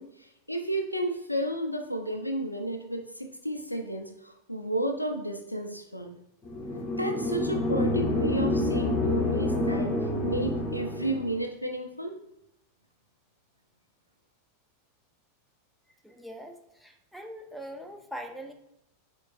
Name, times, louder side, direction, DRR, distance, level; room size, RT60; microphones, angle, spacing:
voice 1, 0.0-6.2 7.0-9.9 10.2-12.2, right 1 dB, 90° left, 4 dB, 0.5 m, -32 dB
sound 1, 6.4-11.4, left 1 dB, 30° left, 0.8 m, -28 dB
voice 2, 16.0-18.5, equal, ahead, 3 dB, 0.5 m, -42 dB
4.5 x 3.7 x 2.4 m, 0.83 s
figure-of-eight pair, 90°, 0 cm